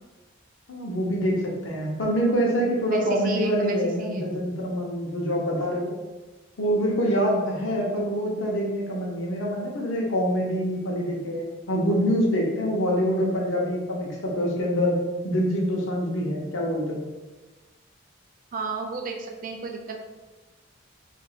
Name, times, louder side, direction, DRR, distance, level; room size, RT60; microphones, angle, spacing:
voice 1, 0.7-5.9 6.6-17.0, equal, 70° left, -2 dB, 0.8 m, -25 dB
voice 2, 2.9-4.2 18.5-20.0, right 4 dB, 40° right, 2 dB, 0.4 m, -32 dB
2.9 x 2.6 x 4.0 m, 1.2 s
head